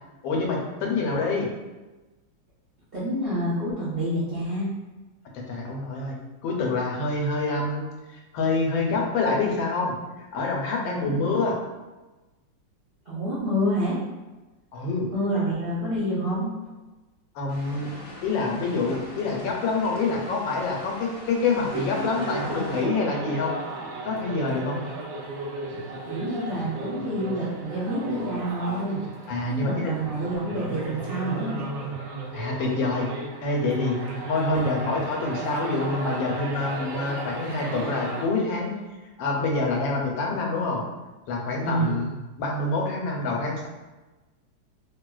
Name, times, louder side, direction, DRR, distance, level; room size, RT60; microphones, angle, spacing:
voice 1, 0.2-1.5 5.3-6.2 6.4-7.9 8.1-10.0 10.3-11.6 14.7-15.1 17.3-17.9 18.2-23.5 24.0-24.8 29.3-29.9 32.3-33.1 33.4-34.0 34.3-38.7 39.2-40.8 41.3-42.1 42.4-43.7, left 3 dB, 90° left, 0 dB, 1.4 m, -26 dB
voice 2, 2.9-4.7 10.8-11.1 13.1-14.0 15.1-16.4 26.1-29.0 29.5-31.8 34.4-34.7 41.6-42.0, right 1 dB, 60° right, -11 dB, 0.6 m, -28 dB
sound 1, 17.5-22.8, left 1 dB, 55° left, 1.0 m, -41 dB
sound 2, 21.7-38.3, right 2 dB, 80° right, 1.4 m, -35 dB
3.5 x 2.7 x 2.3 m, 1.1 s
omnidirectional pair, 2.0 m